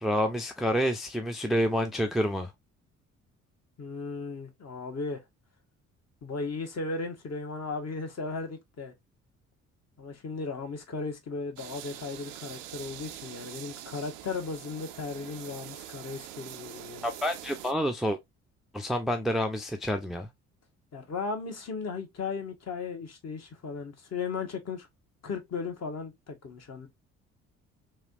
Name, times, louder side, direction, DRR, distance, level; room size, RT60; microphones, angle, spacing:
voice 1, 0.0-2.5 17.0-18.2 18.7-20.3, equal, ahead, 0.5 m, -28 dB
voice 2, 3.8-5.2 6.2-8.9 10.0-17.1 20.9-24.9 25.2-26.9, left 4 dB, 40° left, 1.1 m, -36 dB
sound 1, 11.6-17.7, right 12 dB, 75° right, 0.5 m, -44 dB
3.2 x 2.8 x 2.5 m
figure-of-eight pair, 45°, 39 cm